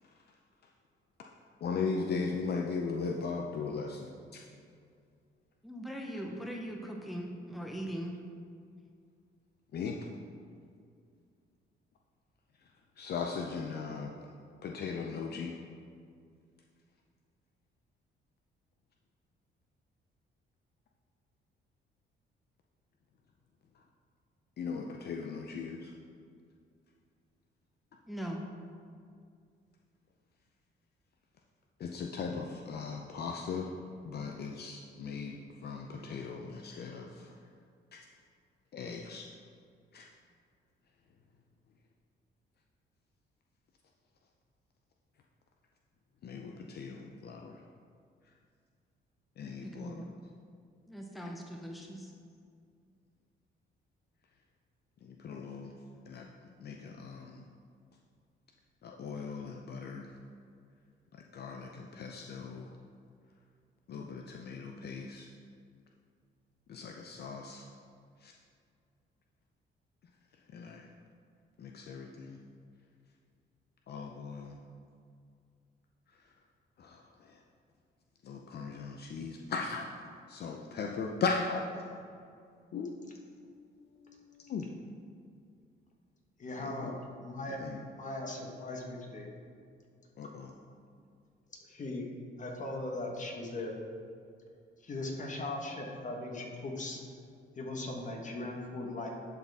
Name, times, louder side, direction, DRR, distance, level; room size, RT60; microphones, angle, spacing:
voice 1, 1.6-4.1 4.3-4.4 9.7-10.0 13.0-14.1 14.6-15.5 24.6-25.9 31.8-33.7 34.0-37.3 37.9-38.0 38.7-39.3 39.9-40.1 46.2-47.6 49.4-50.0 55.0-55.7 56.1-56.3 56.6-57.4 58.8-60.1 61.3-62.7 63.9-65.3 66.7-67.6 68.2-68.3 70.5-70.8 71.6-72.4 73.9-74.6 76.8-77.0 78.2-79.9 80.3-81.7 82.7-83.2 83.8-84.7 86.6-86.7 87.6-87.8 90.2-90.5, left 5 dB, 55° left, 2 dB, 0.5 m, -38 dB
voice 2, 5.6-8.2 28.1-28.5 49.6-50.1 50.9-52.1, equal, ahead, 1 dB, 0.7 m, -40 dB
voice 3, 86.4-87.0 87.2-87.6 88.0-89.3 91.7-92.0 92.4-93.8 94.8-97.0 97.5-99.1, left 2 dB, 40° left, 0 dB, 1.4 m, -38 dB
11.5 x 4.1 x 3.5 m, 2.3 s
cardioid pair, 90°, 20 cm